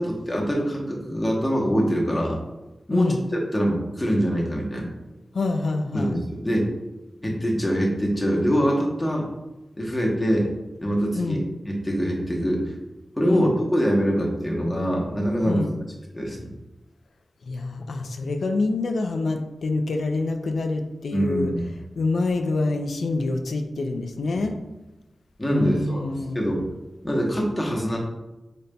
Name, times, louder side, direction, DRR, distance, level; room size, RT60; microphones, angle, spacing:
voice 1, 0.0-2.4 2.9-4.9 5.9-6.7 7.2-9.3 9.8-10.5 10.8-11.4 11.6-12.7 13.2-15.7 16.1-16.5 21.1-21.6 25.4-26.6 27.0-28.0, equal, 15° left, -2 dB, 1.0 m, -24 dB
voice 2, 5.3-6.2 11.2-11.4 13.3-13.5 15.4-15.7 17.5-21.5 22.0-24.6 25.5-26.5, left 3 dB, 90° left, 5 dB, 0.4 m, -26 dB
5.1 x 4.1 x 2.2 m, 1.0 s
wide cardioid pair, 70°, 0 cm